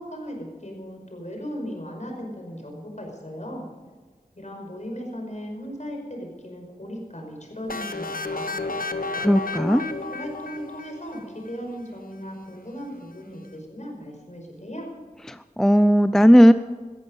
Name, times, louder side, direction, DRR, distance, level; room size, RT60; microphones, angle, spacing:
voice 1, 0.0-3.7 4.4-8.8 9.6-14.9, equal, 50° left, 1 dB, 5.4 m, -37 dB
sound 1, 7.7-11.5, left 3 dB, 70° left, 1.1 m, -32 dB
voice 2, 9.2-9.8 15.3-16.5, equal, 5° left, 12 dB, 0.5 m, -16 dB
17.5 x 13.5 x 5.5 m, 1.4 s
wide cardioid pair, 45°, 15 cm